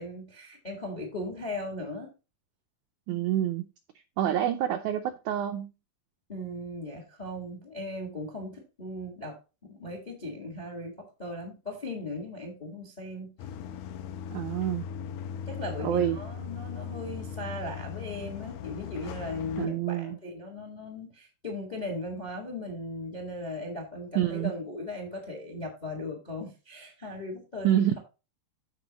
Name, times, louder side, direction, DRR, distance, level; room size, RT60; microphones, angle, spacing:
voice 1, 0.0-2.1 6.3-13.3 15.5-28.0, left 1 dB, 35° left, 0.7 m, -38 dB
voice 2, 3.1-3.7 4.2-5.7 14.3-14.8 15.8-16.2 19.6-20.2 24.1-24.5 27.6-27.9, right 11 dB, 90° right, 1.7 m, -27 dB
sound 1, 13.4-19.7, left 7 dB, 80° left, 2.4 m, -38 dB
14.0 x 4.7 x 2.9 m
omnidirectional pair, 4.3 m